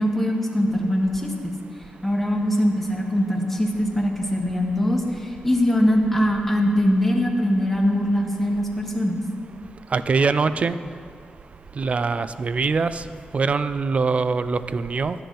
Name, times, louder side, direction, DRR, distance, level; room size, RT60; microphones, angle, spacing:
voice 1, 0.0-1.6 2.0-9.2, equal, 5° left, 0 dB, 1.1 m, -22 dB
voice 2, 9.9-10.8 11.8-13.0 13.3-15.2, right 4 dB, 45° right, 13 dB, 0.3 m, -23 dB
10.5 x 6.8 x 3.9 m, 2.2 s
cardioid pair, 85°, 3 cm